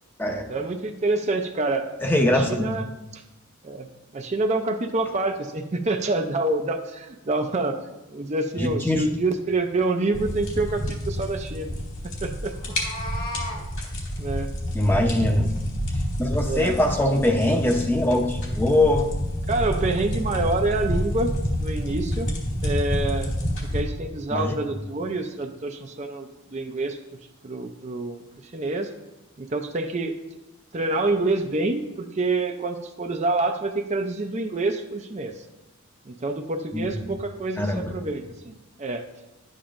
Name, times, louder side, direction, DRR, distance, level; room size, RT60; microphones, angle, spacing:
voice 1, 0.5-1.9 2.3-2.8 3.1-3.2 3.6-11.8 12.2-12.5 14.2-14.5 16.4-16.8 19.5-21.3 21.6-22.3 22.6-23.3 23.7-28.9 29.4-30.1 30.7-35.4 36.1-39.1, right 2 dB, 35° right, 5 dB, 0.5 m, -27 dB
voice 2, 2.0-2.8 8.6-9.0 14.7-15.5 16.2-19.1 24.3-24.5 36.7-37.1 37.6-37.9, left 1 dB, 10° left, 3 dB, 0.7 m, -22 dB
sound 1, 10.1-23.8, equal, 65° left, 2.3 m, -28 dB
Meow, 12.5-13.6, left 1 dB, 45° left, 1.4 m, -34 dB
11.0 x 8.7 x 2.5 m, 1.0 s
head